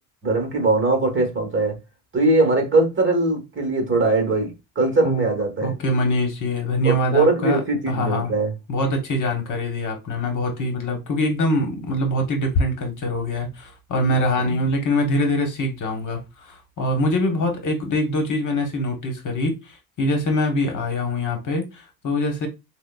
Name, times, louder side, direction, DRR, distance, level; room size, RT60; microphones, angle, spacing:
voice 1, 0.2-1.8 2.1-5.7 6.8-8.5 14.4-14.5, right 2 dB, 25° right, 1.2 m, -21 dB
voice 2, 5.6-7.6 7.9-8.3 8.7-22.5, left 1 dB, 40° left, 1.1 m, -24 dB
6.2 x 2.2 x 2.3 m
cardioid pair, 115°, 46 cm